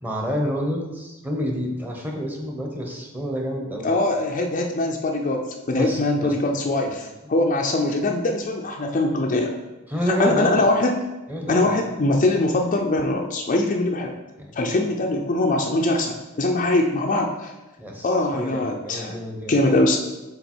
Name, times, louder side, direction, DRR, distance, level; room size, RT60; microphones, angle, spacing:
voice 1, 0.0-3.9 5.7-6.3 7.2-7.3 9.9-10.6 11.3-11.8 14.4-14.5 17.8-18.1 18.3-19.7, equal, 10° right, 0 dB, 0.9 m, -28 dB
voice 2, 3.8-9.5 10.1-11.0 11.5-14.1 14.5-17.5 18.0-19.2 19.5-20.0, left 2 dB, 35° left, 2 dB, 0.5 m, -22 dB
6.9 x 3.9 x 4.4 m, 1.0 s
head